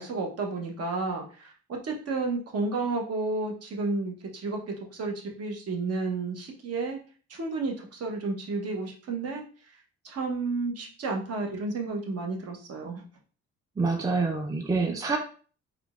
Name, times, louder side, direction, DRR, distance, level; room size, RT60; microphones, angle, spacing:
voice 1, 0.0-7.0 7.3-9.4 10.0-13.0, right 3 dB, 55° right, 1 dB, 0.9 m, -31 dB
voice 2, 13.8-15.2, right 4 dB, 10° right, 2 dB, 0.5 m, -26 dB
3.7 x 2.3 x 2.4 m, 0.39 s
cardioid pair, 90°, 30 cm